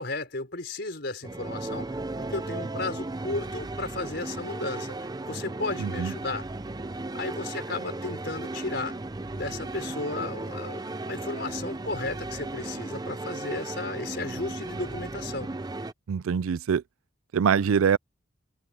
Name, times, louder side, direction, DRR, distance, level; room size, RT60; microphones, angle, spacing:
voice 1, 0.0-6.5 7.1-9.0 9.3-15.5, left 2 dB, 55° left, 5.0 m, -34 dB
sound 1, 1.2-15.9, right 2 dB, 20° right, 0.5 m, -35 dB
voice 2, 5.8-6.1 16.1-16.8 17.3-18.0, right 7 dB, 85° right, 0.4 m, -24 dB
head